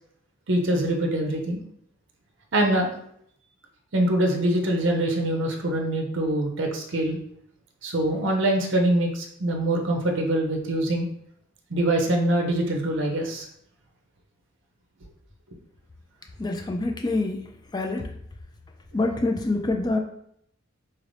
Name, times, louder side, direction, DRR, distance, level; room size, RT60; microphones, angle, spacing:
voice 1, 0.5-1.6 2.5-2.9 3.9-7.2 7.8-11.1 11.7-13.5, right 1 dB, 60° right, 1 dB, 0.6 m, -24 dB
voice 2, 16.4-17.4 17.7-18.1 18.9-20.0, left 2 dB, 20° left, 4 dB, 0.4 m, -26 dB
4.0 x 3.2 x 2.6 m, 0.70 s
head